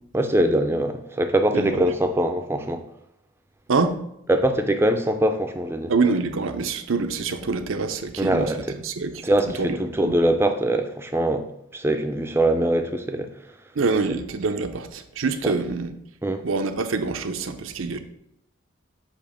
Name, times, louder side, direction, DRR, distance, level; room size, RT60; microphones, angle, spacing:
voice 1, 0.1-2.8 4.3-5.9 8.2-8.6 9.2-11.4 11.7-13.3 15.4-15.5 16.2-16.4, right 1 dB, 10° right, 6 dB, 0.4 m, -22 dB
voice 2, 1.5-1.9 3.7-4.0 5.9-8.5 8.8-9.2 9.6-10.2 13.8-15.9 16.4-18.0, right 4 dB, 85° right, 8 dB, 0.6 m, -25 dB
6.7 x 3.0 x 5.0 m, 0.78 s
head